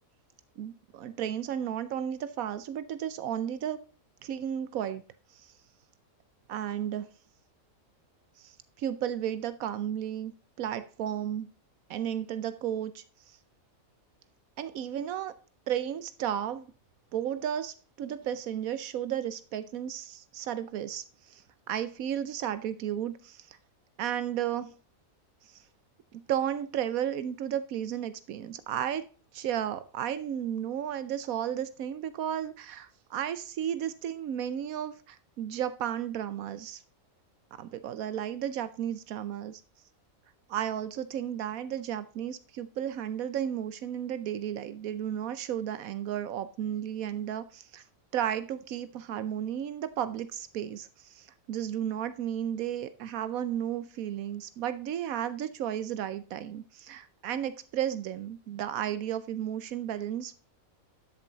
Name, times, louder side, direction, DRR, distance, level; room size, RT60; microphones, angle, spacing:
voice 1, 0.6-3.8 4.2-5.0 5.3-5.5 6.5-7.1 8.4-10.3 10.6-11.5 11.9-13.4 14.6-15.3 15.7-16.7 17.1-21.4 21.7-23.6 24.0-24.7 25.5-25.6 26.1-29.1 29.3-36.8 37.6-39.6 40.5-47.8 48.1-60.3, right 10 dB, 85° right, 14 dB, 1.1 m, -33 dB
12.0 x 7.3 x 3.9 m, 0.38 s
omnidirectional pair, 1.5 m